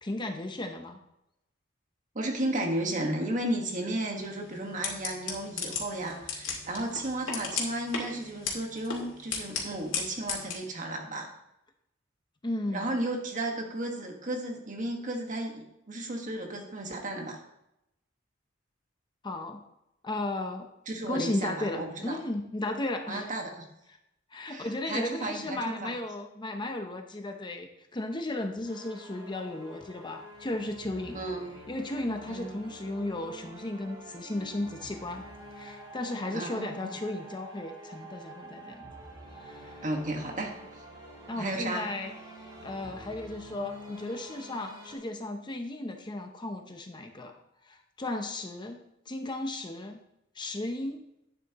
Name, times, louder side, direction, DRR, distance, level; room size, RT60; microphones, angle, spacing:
voice 1, 0.0-1.0 9.6-9.7 12.4-12.9 19.2-19.6 20.0-20.7 21.1-23.3 24.3-31.2 31.7-35.2 35.6-38.9 39.3-39.8 41.3-47.4 47.6-48.8 49.1-50.0 50.3-51.0, left 2 dB, 25° left, 5 dB, 0.7 m, -35 dB
voice 2, 2.1-11.3 12.7-17.4 20.9-22.2 23.1-23.6 24.5-25.9 31.1-31.5 32.3-32.6 36.3-36.9 39.8-40.5 41.3-41.9, right 1 dB, 40° right, 2 dB, 1.6 m, -34 dB
sound 1, 4.0-10.5, left 5 dB, 90° left, 2.3 m, -37 dB
sound 2, 28.6-45.0, right 1 dB, 20° right, 3.3 m, -47 dB
11.0 x 9.5 x 3.0 m, 0.84 s
head